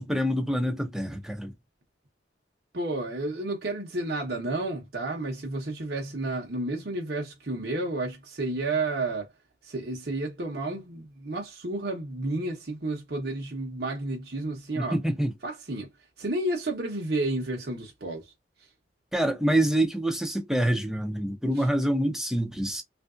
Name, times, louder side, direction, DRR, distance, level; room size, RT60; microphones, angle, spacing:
voice 1, 0.0-1.5 14.8-15.3 19.1-22.8, right 1 dB, 5° right, 0.6 m, -26 dB
voice 2, 2.7-9.3 9.6-15.0 15.4-15.9 16.2-18.3 21.5-21.7, right 2 dB, 55° right, 1.0 m, -31 dB
3.4 x 2.6 x 2.4 m
head